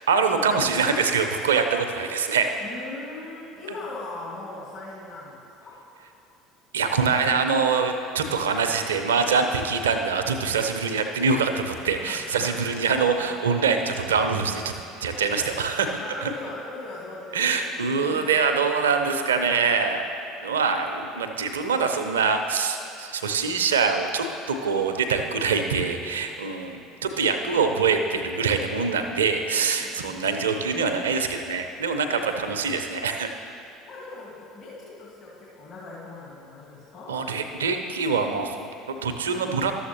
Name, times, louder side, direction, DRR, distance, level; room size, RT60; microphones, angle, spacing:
voice 1, 0.1-2.5 6.7-14.7 15.0-16.3 17.3-20.0 20.4-33.3 37.1-39.7, right 5 dB, 75° right, 6 dB, 0.5 m, -24 dB
voice 2, 2.6-5.8 12.1-12.6 16.0-17.6 17.9-18.6 29.7-30.3 33.9-37.2, left 2 dB, 45° left, -8 dB, 2.0 m, -39 dB
12.5 x 7.1 x 2.9 m, 2.8 s
figure-of-eight pair, 65°, 0 cm